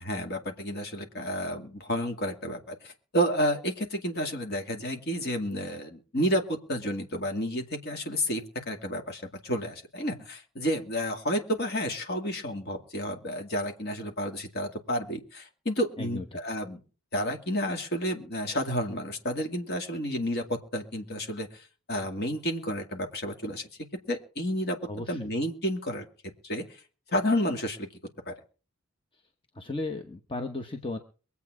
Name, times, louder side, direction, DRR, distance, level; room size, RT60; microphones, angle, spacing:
voice 1, 0.0-16.8 17.1-23.7 24.1-24.8 25.1-26.0 26.4-26.8 27.1-27.9 28.3-28.4, equal, 45° left, 3 dB, 2.3 m, -31 dB
voice 2, 16.0-16.4 24.9-25.3 29.1-29.2 29.5-31.0, left 2 dB, 25° left, 5 dB, 0.9 m, -35 dB
23.0 x 8.4 x 4.8 m, 0.38 s
head